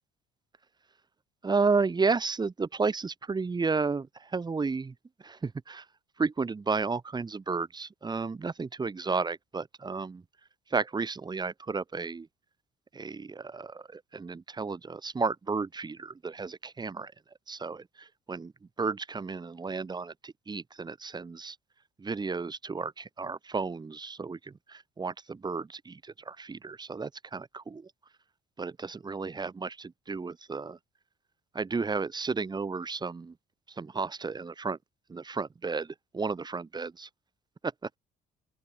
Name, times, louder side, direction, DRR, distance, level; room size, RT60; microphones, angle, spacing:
voice 1, 1.4-4.9 5.2-5.8 6.2-10.2 10.7-12.3 12.9-17.1 17.5-18.5 18.8-21.6 22.0-27.9 28.6-30.8 31.5-33.3 33.8-34.8 35.1-37.1, right 4 dB, 25° right, 6.8 m, -32 dB
open air
cardioid pair, 110°, 17 cm